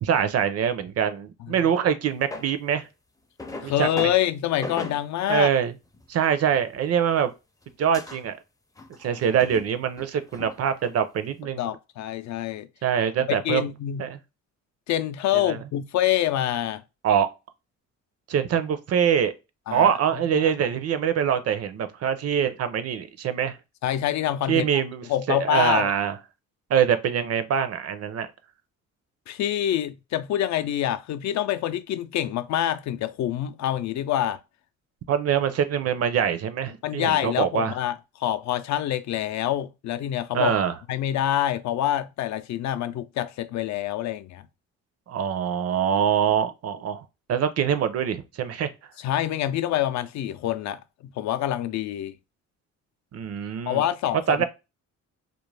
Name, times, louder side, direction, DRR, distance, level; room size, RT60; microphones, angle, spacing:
voice 1, 0.0-2.9 3.6-4.1 5.3-5.7 6.1-7.3 7.8-8.4 9.0-11.7 12.8-13.7 14.0-14.2 15.3-15.6 17.0-17.3 18.3-19.3 19.7-23.6 24.5-26.2 26.7-28.3 35.1-37.7 40.3-40.7 45.1-47.0 47.3-48.7 53.1-53.8 54.3-54.4, right 8 dB, 55° right, 0.5 m, -24 dB
sound 1, 2.3-2.5 3.4-4.2 4.6-5.0 5.8-6.1 6.7-7.3 7.6-7.7 7.9-8.2 8.8-9.7 10.0-11.0, left 2 dB, 10° left, 0.4 m, -38 dB
voice 2, 3.6-5.5 11.5-12.7 13.4-14.1 14.9-16.8 19.7-19.9 20.4-20.5 23.8-25.9 29.3-34.4 36.8-37.9 38.2-40.6 40.9-44.5 49.0-52.1 53.7-54.4, left 12 dB, 65° left, 0.4 m, -26 dB
2.5 x 2.1 x 3.2 m
cardioid pair, 90°, 30 cm